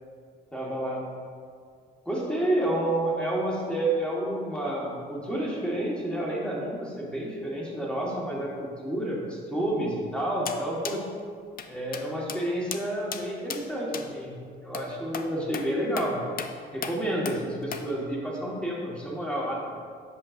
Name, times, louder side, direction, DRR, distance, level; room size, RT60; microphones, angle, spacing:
voice 1, 0.5-1.0 2.0-11.0 11.7-14.4 14.6-16.2 16.7-19.8, right 1 dB, 5° left, -4 dB, 1.5 m, -30 dB
sound 1, 10.5-10.6 10.8-11.0 11.6-11.7 11.9-12.0 12.3-12.4 12.7-12.8 13.1-13.2 13.5-13.6 13.9-14.1 14.7-14.9 15.1-15.3 15.5-15.7 16.0-16.1 16.4-16.5 16.8-17.0 17.3-17.4 17.7-17.8, left 7 dB, 45° left, 0.5 m, -34 dB
7.6 x 5.2 x 2.6 m, 2.1 s
cardioid pair, 90°, 20 cm